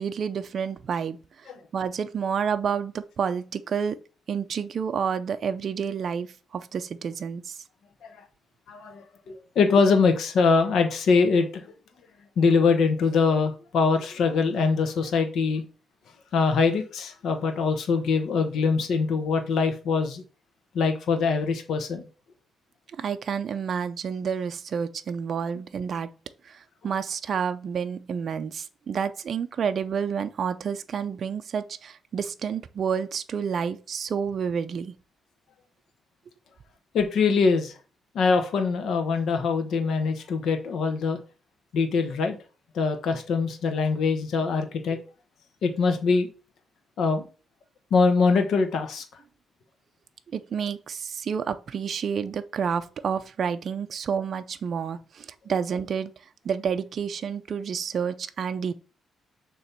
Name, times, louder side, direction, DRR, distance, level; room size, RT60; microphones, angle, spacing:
voice 1, 0.0-4.0 4.3-7.6 23.0-26.1 26.4-34.9 50.3-58.7, right 7 dB, 50° right, 0.5 m, -29 dB
voice 2, 8.7-11.7 12.4-15.6 16.3-20.2 20.7-22.1 36.9-37.8 38.1-41.2 41.7-42.4 42.7-45.0 45.6-46.3 47.0-47.3 47.9-49.0, left 4 dB, 70° left, 1.1 m, -23 dB
6.9 x 3.1 x 5.9 m
cardioid pair, 115°, 0 cm